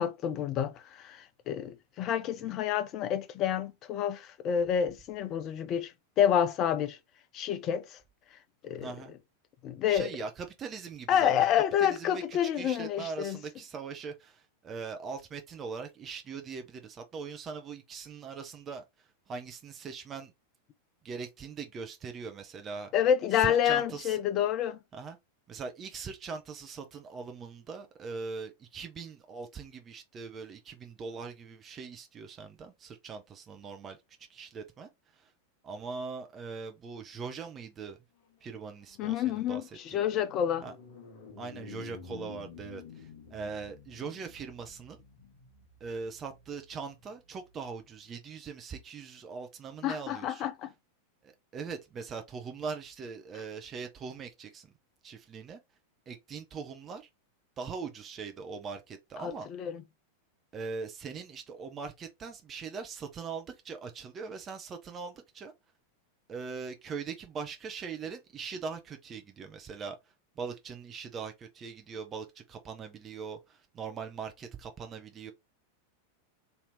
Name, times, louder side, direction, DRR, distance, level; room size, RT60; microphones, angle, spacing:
voice 1, 0.0-5.9 6.2-7.0 7.3-8.0 8.6-8.9 9.6-10.1 11.1-13.4 22.9-24.8 39.0-40.6 49.8-50.7 59.2-59.8, left 9 dB, 35° left, 0.6 m, -28 dB
voice 2, 8.8-9.1 9.9-11.3 11.8-20.3 21.0-22.9 23.3-24.2 24.9-25.2 25.5-34.0 34.3-35.3 35.6-38.0 38.4-39.8 40.6-40.7 41.4-45.0 45.8-50.5 51.2-54.7 55.0-55.6 56.1-57.1 57.6-59.5 60.5-65.5 66.3-70.0 70.4-75.3, right 5 dB, 25° right, 0.8 m, -41 dB
sound 1, 38.3-47.8, left 6 dB, 55° left, 1.0 m, -51 dB
3.3 x 2.8 x 3.8 m
figure-of-eight pair, 90°, 0 cm